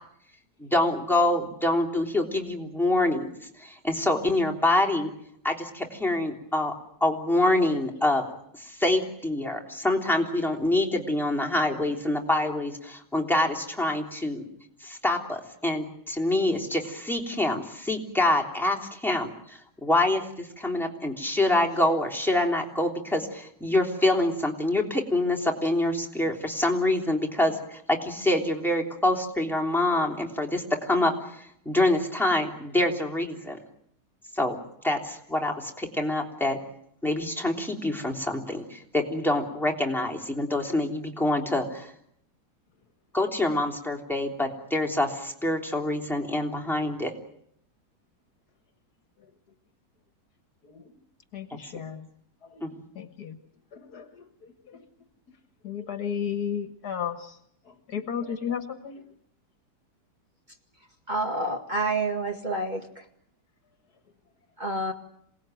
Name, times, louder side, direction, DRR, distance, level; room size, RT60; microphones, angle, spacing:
voice 1, 0.6-3.3 3.6-5.1 5.4-6.7 7.0-8.2 8.5-14.4 14.8-33.6 34.3-34.6 34.8-36.6 37.0-41.9 43.1-47.1 52.6-52.7, left 1 dB, ahead, 3.3 m, -26 dB
voice 2, 51.3-52.1 52.4-53.4 53.7-54.9 55.6-57.4 57.7-59.1, left 7 dB, 60° left, 2.0 m, -34 dB
voice 3, 61.1-63.1 64.6-64.9, right 2 dB, 25° right, 2.1 m, -28 dB
27.5 x 19.0 x 9.2 m
omnidirectional pair, 1.9 m